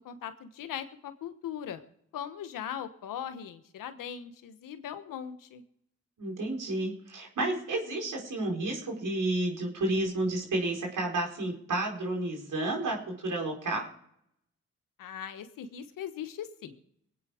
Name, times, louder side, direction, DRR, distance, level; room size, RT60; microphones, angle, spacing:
voice 1, 0.0-1.8 2.1-5.6 15.0-16.7, left 9 dB, 85° left, 10 dB, 1.2 m, -39 dB
voice 2, 6.2-13.8, right 2 dB, 75° right, 0 dB, 4.8 m, -31 dB
22.0 x 8.8 x 4.9 m, 0.71 s
supercardioid pair, 40°, 32 cm